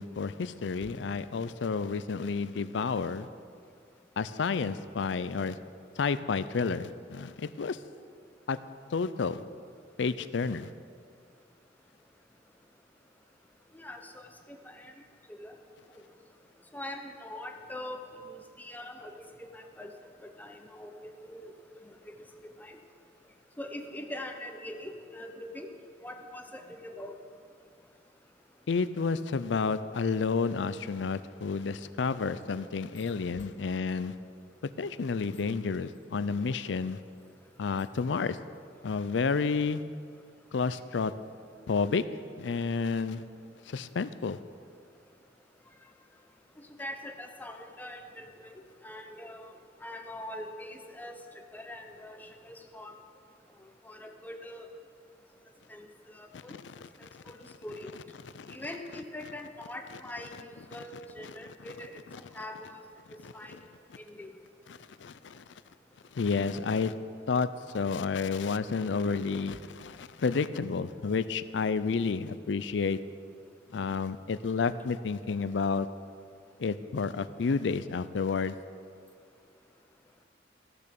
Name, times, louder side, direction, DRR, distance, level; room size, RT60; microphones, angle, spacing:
voice 1, 0.0-3.3 4.2-5.6 6.0-7.8 8.5-8.6 8.9-9.4 10.0-10.7 28.7-34.1 34.8-37.0 37.6-38.4 38.8-39.8 40.5-41.1 41.7-42.0 42.4-43.2 43.7-44.4 56.3-57.2 58.4-58.6 63.2-63.3 64.7-65.4 66.1-66.9 67.3-67.5 67.7-73.0 73.7-75.9 76.6-78.6, left 5 dB, 85° left, 14 dB, 0.5 m, -30 dB
voice 2, 13.7-14.1 14.5-14.9 15.4-15.5 16.7-18.0 18.3-19.2 19.5-19.9 20.4-21.5 22.6-22.7 23.6-25.7 26.0-27.1 46.8-48.3 48.8-49.5 49.8-51.2 51.5-52.9 53.8-54.7 55.7-55.9 56.1-56.6 57.3-57.4 57.6-57.9 58.5-61.9 62.3-62.8 63.3-63.6 64.0-64.3, left 1 dB, 10° left, 4 dB, 0.7 m, -42 dB
14.5 x 6.9 x 6.7 m, 2.2 s
head